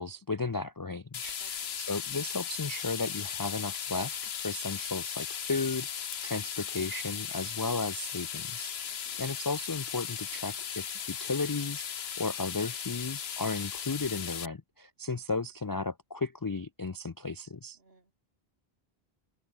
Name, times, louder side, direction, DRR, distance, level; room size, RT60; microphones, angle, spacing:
voice 1, 0.0-1.4 1.8-4.2 4.4-8.9 9.2-17.8, left 3 dB, 30° left, 0.4 m, -34 dB
sound 1, 1.1-14.5, left 8 dB, 80° left, 1.2 m, -37 dB
voice 2, 1.4-1.8 8.8-9.4 17.7-18.1, right 3 dB, 70° right, 3.5 m, -61 dB
open air
omnidirectional pair, 1.0 m